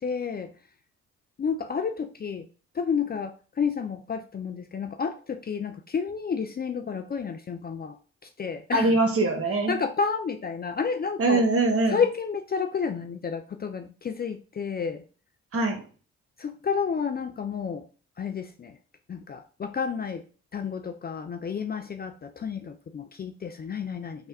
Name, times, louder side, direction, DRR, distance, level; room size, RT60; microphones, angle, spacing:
voice 1, 0.0-0.5 1.4-2.5 2.7-8.0 8.4-9.0 9.7-11.5 11.9-15.0 16.4-17.9 18.2-18.8 19.1-20.2 20.5-24.3, left 6 dB, 30° left, 7 dB, 0.4 m, -30 dB
voice 2, 8.7-9.7 11.2-12.0 15.5-15.8, right 2 dB, 45° right, 4 dB, 1.1 m, -22 dB
3.3 x 2.2 x 4.1 m, 0.38 s
hypercardioid pair, 45°, 33 cm